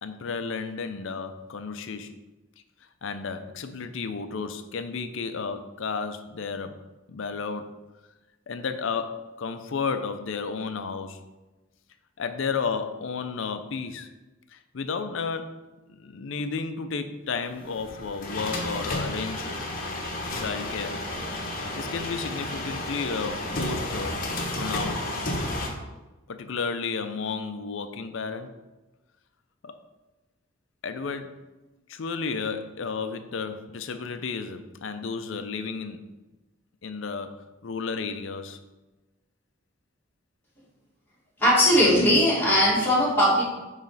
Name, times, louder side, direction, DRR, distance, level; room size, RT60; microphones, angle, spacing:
voice 1, 0.0-2.2 3.0-6.8 7.1-7.8 8.5-11.2 12.2-14.1 14.5-15.6 15.9-19.7 20.3-21.0 21.8-24.2 24.5-25.1 26.3-28.6 29.6-29.8 30.8-31.4 31.9-36.1 36.8-38.6, left 5 dB, 65° left, 9 dB, 0.5 m, -32 dB
sound 1, 17.5-25.7, left 1 dB, 45° left, 1.1 m, -32 dB
voice 2, 41.4-43.4, equal, 10° left, -7 dB, 2.0 m, -19 dB
8.7 x 3.2 x 4.0 m, 1.1 s
head